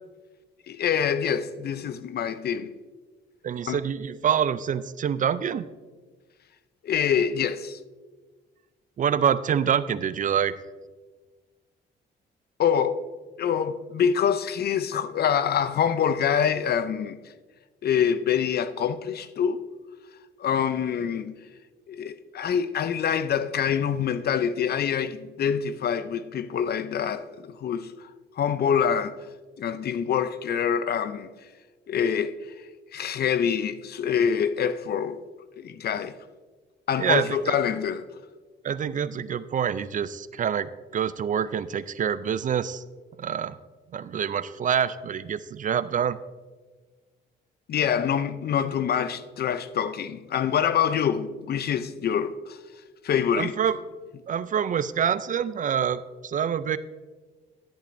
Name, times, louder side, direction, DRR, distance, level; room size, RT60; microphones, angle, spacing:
voice 1, 0.7-2.7 3.7-3.8 6.8-7.8 12.6-13.0 13.4-17.2 17.8-19.6 20.4-21.3 21.9-28.1 28.4-29.1 29.6-31.3 31.9-32.3 32.9-35.2 35.6-36.1 36.9-38.1 47.7-52.6 53.0-53.6, left 8 dB, 55° left, 0.5 m, -25 dB
voice 2, 3.4-5.7 9.0-10.5 37.0-37.6 38.6-42.8 43.2-43.5 43.9-46.2 53.4-53.8 54.3-56.8, right 8 dB, 40° right, 0.4 m, -26 dB
11.5 x 10.5 x 2.6 m
cardioid pair, 90°, 20 cm